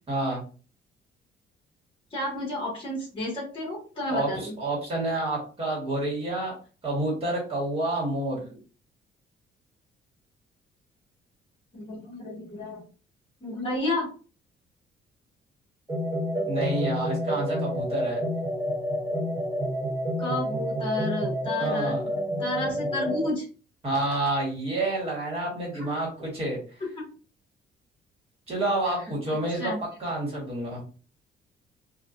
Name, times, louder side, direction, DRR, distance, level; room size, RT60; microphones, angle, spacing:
voice 1, 0.1-0.4 4.1-6.5 6.8-8.5 16.5-18.2 21.6-22.0 22.3-22.4 23.8-26.6 28.5-29.7 30.0-30.8, right 2 dB, 30° right, -3 dB, 1.5 m, -29 dB
voice 2, 2.1-4.5 11.7-12.8 13.4-14.1 20.2-22.1 22.4-23.5 25.7-25.9 29.5-29.8, left 2 dB, 30° left, -3 dB, 1.7 m, -31 dB
sound 1, 15.9-23.3, equal, 15° right, 1.2 m, -29 dB
4.0 x 2.5 x 2.4 m, 0.37 s
cardioid pair, 165°, 19 cm